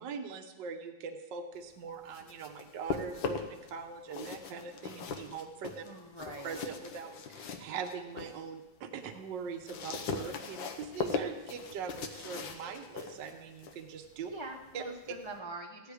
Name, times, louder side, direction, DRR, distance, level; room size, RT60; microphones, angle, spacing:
voice 1, 0.0-5.8 6.4-14.3 14.7-14.8, right 6 dB, 65° right, 5 dB, 1.5 m, -42 dB
sound 1, 1.9-3.7 4.0-8.4 8.8-15.4, left 5 dB, 70° left, 1.7 m, -40 dB
voice 2, 5.8-6.6 14.3-15.9, right 1 dB, 35° left, 2 dB, 0.4 m, -43 dB
15.5 x 11.0 x 5.0 m, 1.1 s
omnidirectional pair, 2.3 m